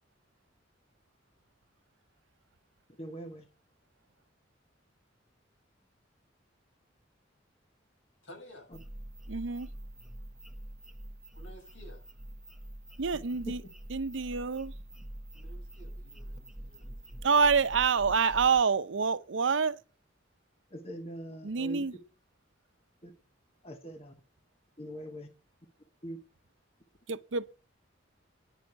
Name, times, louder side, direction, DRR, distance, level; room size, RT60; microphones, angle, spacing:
voice 1, 3.0-3.5 13.5-13.6 20.7-21.8 23.0-23.1 23.6-24.1 24.8-25.3 26.0-26.2, equal, 35° left, 1.3 m, -42 dB
voice 2, 8.2-8.7 11.3-12.1 15.3-18.1, equal, 85° left, 7.8 m, -54 dB
sound 1, 8.7-18.6, right 1 dB, 5° right, 0.9 m, -45 dB
voice 3, 9.3-9.7 13.0-13.6 13.9-14.7 17.2-19.8 21.4-21.9 27.1-27.6, right 5 dB, 80° right, 0.7 m, -27 dB
10.5 x 6.2 x 7.9 m
head